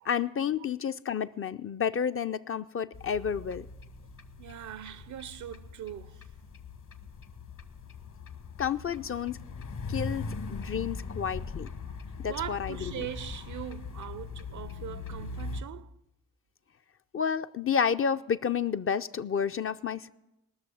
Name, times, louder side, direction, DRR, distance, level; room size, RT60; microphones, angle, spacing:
voice 1, 0.0-3.7 8.6-9.4 9.9-11.7 12.2-13.1 17.1-20.1, left 7 dB, 40° left, 0.5 m, -30 dB
sound 1, 2.9-15.6, left 4 dB, 55° left, 1.3 m, -40 dB
voice 2, 4.4-6.3 11.9-12.0 12.3-16.0, right 11 dB, 55° right, 0.6 m, -41 dB
19.0 x 6.5 x 7.0 m
supercardioid pair, 45°, 36 cm